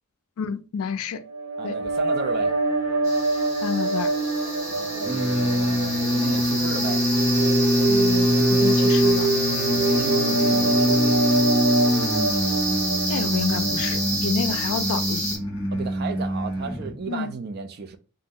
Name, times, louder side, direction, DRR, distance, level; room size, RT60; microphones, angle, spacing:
voice 1, 0.4-1.2 1.6-1.8 3.6-4.1 7.9-9.3 13.1-15.4 17.1-17.3, left 6 dB, 75° left, 0.4 m, -29 dB
sound 1, 1.2-14.6, right 3 dB, 90° right, 0.9 m, -26 dB
voice 2, 1.6-2.5 4.7-7.0 9.5-11.2 15.7-18.0, right 5 dB, 45° right, 0.4 m, -34 dB
sound 2, 3.0-15.4, right 1 dB, 10° right, 0.9 m, -29 dB
sound 3, 5.0-17.0, left 1 dB, 20° left, 0.6 m, -24 dB
2.6 x 2.0 x 3.6 m
head